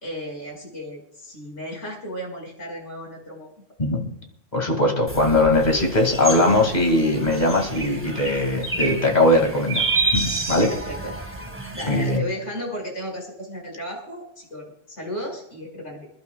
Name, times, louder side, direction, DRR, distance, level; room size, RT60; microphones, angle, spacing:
voice 1, 0.0-3.5 10.7-11.4 11.7-16.1, equal, 70° left, -1 dB, 5.1 m, -34 dB
voice 2, 4.5-9.8 10.1-10.7 11.9-12.2, left 1 dB, 35° left, 2 dB, 2.2 m, -20 dB
sound 1, 5.1-12.2, right 3 dB, 10° right, 1.6 m, -29 dB
27.5 x 11.5 x 2.3 m, 0.80 s
omnidirectional pair, 1.3 m